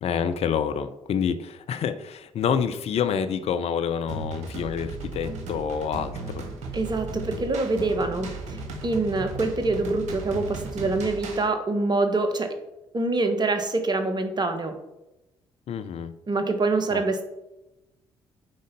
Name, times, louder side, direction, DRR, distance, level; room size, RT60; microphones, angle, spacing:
voice 1, 0.0-6.5 15.7-16.1 16.9-17.0, left 7 dB, 50° left, 9 dB, 0.7 m, -28 dB
sound 1, 4.1-11.5, right 3 dB, 60° right, 1.5 m, -36 dB
voice 2, 6.7-12.5 12.9-14.7 16.3-17.2, right 3 dB, 30° right, 8 dB, 1.4 m, -25 dB
8.7 x 3.9 x 5.3 m, 0.94 s
figure-of-eight pair, 45°, 14 cm